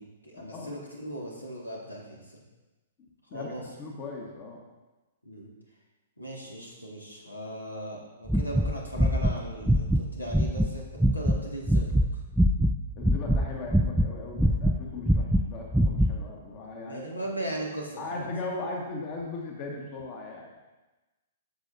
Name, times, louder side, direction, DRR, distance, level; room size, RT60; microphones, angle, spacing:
voice 1, 0.0-2.4 3.3-3.6 5.2-5.5 6.2-12.2 16.8-18.3, right 1 dB, 85° left, -2 dB, 2.1 m, -38 dB
voice 2, 3.8-4.6 13.0-17.0 18.0-20.6, left 3 dB, 35° left, 0 dB, 1.5 m, -38 dB
sound 1, 8.3-10.7 11.0-11.4 11.7-12.8 13.0-14.1 14.4-16.1, equal, ahead, 0.4 m, -23 dB
13.5 x 6.7 x 2.7 m, 1.1 s
figure-of-eight pair, 115°, 0 cm